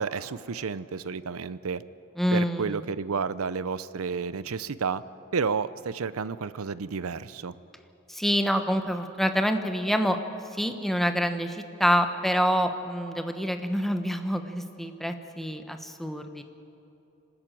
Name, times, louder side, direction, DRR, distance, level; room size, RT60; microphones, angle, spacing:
voice 1, 0.0-1.8 2.3-5.0 5.3-7.6, right 5 dB, 90° right, 16 dB, 0.6 m, -31 dB
voice 2, 2.2-2.8 8.1-10.2 10.5-16.4, equal, ahead, 7 dB, 1.0 m, -27 dB
25.5 x 13.0 x 9.1 m, 2.9 s
head